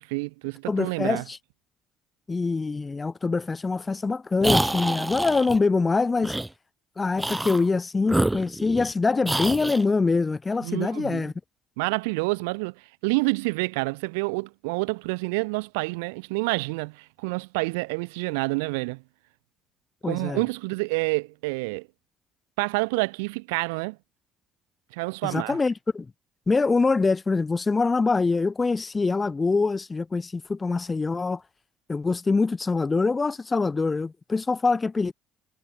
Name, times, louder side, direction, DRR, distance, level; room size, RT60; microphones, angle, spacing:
voice 1, 0.0-1.2 10.6-11.3 11.8-19.0 20.0-21.9 22.6-24.0 24.9-25.6, right 28 dB, 85° right, 5.4 m, -28 dB
voice 2, 0.7-1.4 2.3-6.4 7.0-11.3 20.0-20.4 25.2-26.1 26.5-31.4 31.9-35.1, left 4 dB, 25° left, 5.6 m, -24 dB
sound 1, 4.4-5.6 6.2-6.5 7.2-7.6 8.1-8.9 9.2-9.8, right 1 dB, 10° right, 2.2 m, -27 dB
hypercardioid pair, 65°, 0 cm